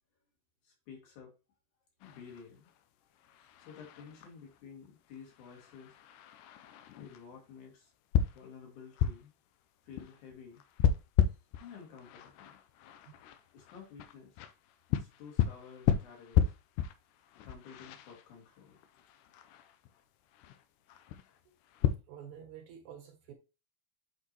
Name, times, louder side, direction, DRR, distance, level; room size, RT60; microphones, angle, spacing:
voice 1, 0.6-1.3 2.0-2.7 3.2-6.0 7.0-7.9 8.3-9.3 9.8-10.6 11.3-12.6 13.5-14.4 14.9-16.5 17.4-18.8, left 6 dB, 65° left, 3.5 m, -52 dB
sound 1, 2.0-22.0, left 9 dB, 80° left, 2.0 m, -35 dB
voice 2, 22.1-23.3, right 9 dB, 70° right, 2.2 m, -49 dB
8.2 x 4.7 x 2.9 m
omnidirectional pair, 3.9 m